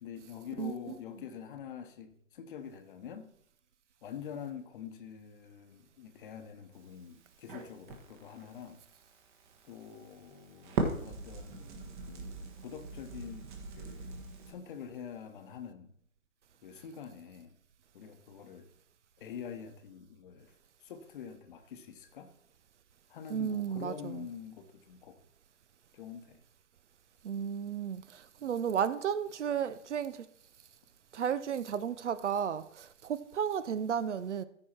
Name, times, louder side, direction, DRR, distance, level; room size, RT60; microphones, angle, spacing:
voice 1, 0.0-3.3 4.0-8.8 9.6-14.1 14.5-15.9 16.6-17.5 17.9-18.7 19.2-20.5 20.8-22.3 23.1-25.2 25.9-26.4, left 7 dB, 40° left, 1.1 m, -46 dB
Crackle, 6.7-14.5, right 4 dB, 35° right, 1.5 m, -41 dB
voice 2, 23.3-24.3 27.2-30.3 31.1-34.4, right 8 dB, 55° right, 0.6 m, -33 dB
14.0 x 4.8 x 4.3 m
figure-of-eight pair, 135°, 42 cm